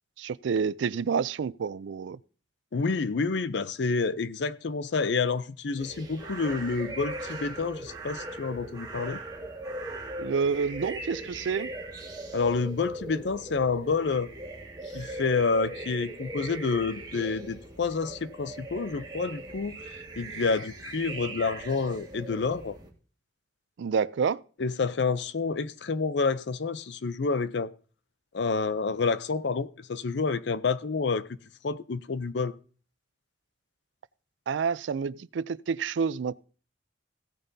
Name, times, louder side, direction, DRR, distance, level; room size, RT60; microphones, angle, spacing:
voice 1, 0.2-2.2 10.2-11.7 23.8-24.4 34.5-36.4, right 6 dB, 80° right, 0.4 m, -28 dB
voice 2, 2.7-9.2 12.3-14.3 14.9-22.8 24.6-27.7 28.3-31.3 31.6-32.5, left 4 dB, 70° left, 0.5 m, -29 dB
sound 1, 5.8-22.9, right 2 dB, 20° right, 1.8 m, -39 dB
16.5 x 8.9 x 2.7 m
head